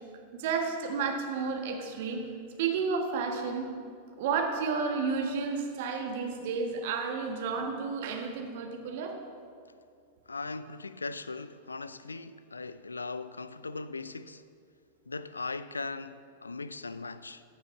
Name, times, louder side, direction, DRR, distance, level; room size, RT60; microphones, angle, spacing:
voice 1, 0.3-2.2 2.6-3.7 4.2-9.2, right 5 dB, 50° right, 1.4 m, -31 dB
voice 2, 10.3-14.4 15.1-17.4, left 3 dB, 80° left, 0.3 m, -39 dB
14.5 x 6.7 x 4.1 m
figure-of-eight pair, 90°, 0 cm